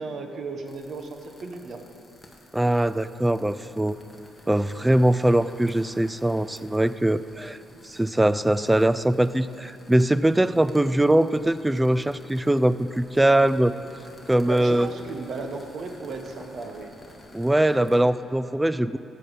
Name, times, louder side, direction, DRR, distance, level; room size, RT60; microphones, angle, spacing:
voice 1, 0.0-1.8 14.4-16.9, right 3 dB, 55° right, 5 dB, 1.2 m, -35 dB
sound 1, 0.6-18.0, left 1 dB, 10° left, 1.6 m, -51 dB
voice 2, 2.5-4.0 4.5-7.6 7.8-13.7 14.3-14.9 17.3-19.0, right 1 dB, 10° right, 14 dB, 0.3 m, -22 dB
13.5 x 8.5 x 5.3 m, 2.8 s
cardioid pair, 90°, 0 cm